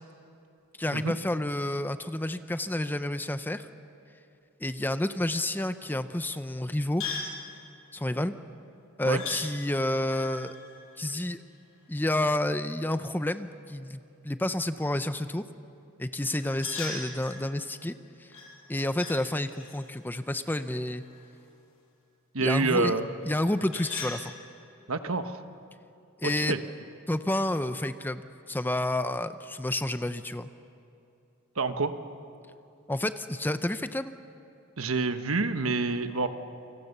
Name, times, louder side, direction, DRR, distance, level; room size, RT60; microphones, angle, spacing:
voice 1, 0.8-3.7 4.6-7.0 7.9-8.3 9.0-10.5 11.0-11.4 11.9-15.4 16.0-17.9 18.2-18.3 18.7-21.0 22.4-22.9 23.2-24.3 26.2-26.6 27.1-30.5 32.9-34.1, left 1 dB, 10° left, 10 dB, 0.6 m, -30 dB
sound 1, 7.0-7.4 9.2-9.4 10.0-11.8 16.4-17.4 18.3-19.2 19.5-21.4 23.2-24.2, left 5 dB, 65° left, 6.5 m, -40 dB
voice 2, 22.3-23.1 24.9-25.4 26.2-26.6 31.6-31.9 34.8-36.3, right 3 dB, 70° right, 8 dB, 1.3 m, -27 dB
29.0 x 25.0 x 6.8 m, 2.7 s
head